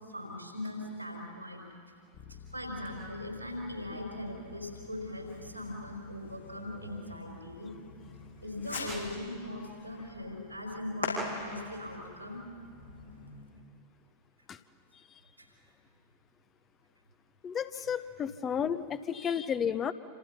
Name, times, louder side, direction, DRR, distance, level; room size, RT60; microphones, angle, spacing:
voice 1, 0.1-1.7 2.3-7.7 8.4-12.4 15.4-15.5 17.7-17.8, left 1 dB, 90° right, 1 dB, 5.3 m, -40 dB
Bass guitar, 2.1-11.8, left 7 dB, 40° left, 2.2 m, -56 dB
Fireworks, 2.8-13.5, left 3 dB, 85° left, 7.7 m, -44 dB
voice 2, 17.4-19.9, left 8 dB, 25° left, 13 dB, 0.8 m, -32 dB
28.5 x 27.0 x 5.7 m, 2.1 s
figure-of-eight pair, 90°, 0 cm